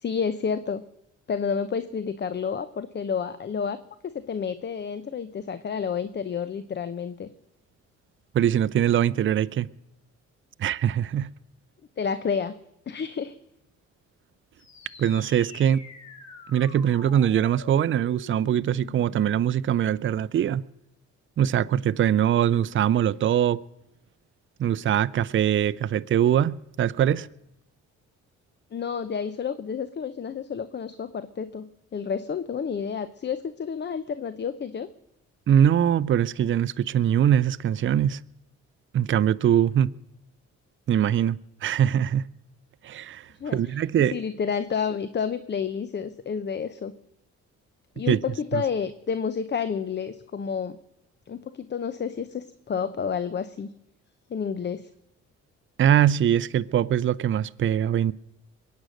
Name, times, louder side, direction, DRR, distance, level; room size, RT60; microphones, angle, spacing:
voice 1, 0.0-0.8 1.3-7.3 12.0-12.5 12.9-13.4 28.7-34.9 43.4-46.9 48.0-50.8 51.3-53.7 54.3-54.9, left 6 dB, 35° left, 0.7 m, -30 dB
voice 2, 8.3-9.7 10.6-11.3 15.0-15.8 16.5-20.6 21.4-23.6 24.6-27.3 35.5-38.2 38.9-39.9 40.9-42.3 42.8-44.2 48.1-48.2 48.5-48.6 55.8-58.1, right 10 dB, 40° right, 0.5 m, -22 dB
sound 1, 14.6-19.6, left 4 dB, 65° left, 2.6 m, -46 dB
23.0 x 9.2 x 6.4 m
cardioid pair, 90°, 30 cm